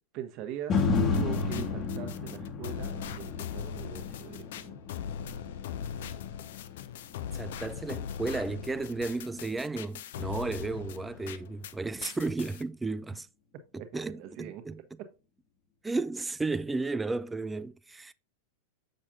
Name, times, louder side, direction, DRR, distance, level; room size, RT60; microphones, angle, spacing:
voice 1, 0.1-4.8 12.2-12.3 13.7-14.6 15.0-15.1, right 10 dB, 40° right, 1.2 m, -42 dB
sound 1, 0.7-8.9 9.3-9.4, left 4 dB, 30° left, 1.2 m, -33 dB
sound 2, 0.8-11.7 12.0-12.6, left 8 dB, 55° left, 0.5 m, -40 dB
voice 2, 7.3-13.3 13.7-14.8 15.8-18.1, right 3 dB, 10° right, 0.3 m, -33 dB
7.1 x 6.6 x 2.6 m
figure-of-eight pair, 90°, 0 cm